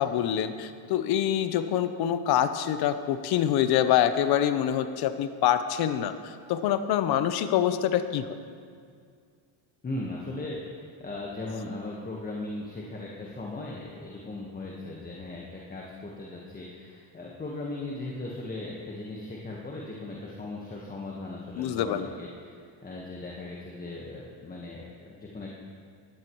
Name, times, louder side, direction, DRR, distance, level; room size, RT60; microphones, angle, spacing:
voice 1, 0.0-8.2 21.6-22.1, left 10 dB, 55° left, 11 dB, 0.9 m, -25 dB
voice 2, 9.8-25.6, left 2 dB, 20° left, -3 dB, 1.4 m, -38 dB
17.0 x 11.5 x 3.1 m, 2.1 s
supercardioid pair, 110°, 46 cm